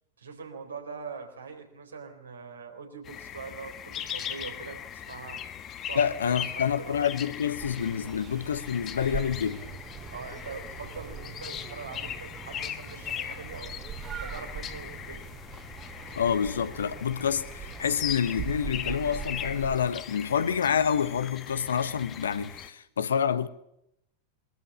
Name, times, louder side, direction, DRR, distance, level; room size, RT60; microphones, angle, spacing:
voice 1, 0.2-5.4 5.9-7.1 10.1-15.3, right 5 dB, 70° right, 4.0 m, -43 dB
sound 1, 3.1-22.7, left 9 dB, 30° left, 1.4 m, -39 dB
voice 2, 5.9-9.6 16.1-23.5, left 7 dB, 65° left, 1.2 m, -28 dB
sound 2, 7.6-19.7, right 7 dB, 30° right, 2.5 m, -41 dB
22.5 x 13.5 x 9.8 m
figure-of-eight pair, 90°, 0 cm